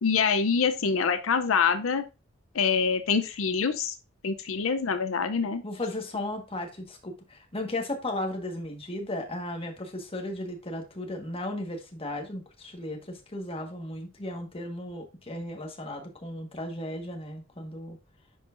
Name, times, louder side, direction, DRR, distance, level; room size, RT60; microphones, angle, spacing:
voice 1, 0.0-2.0 2.5-3.9 4.2-5.6, left 5 dB, 85° left, 9 dB, 0.6 m, -25 dB
voice 2, 5.6-18.0, left 1 dB, 30° left, 2 dB, 1.4 m, -35 dB
10.0 x 4.6 x 2.5 m, 0.28 s
head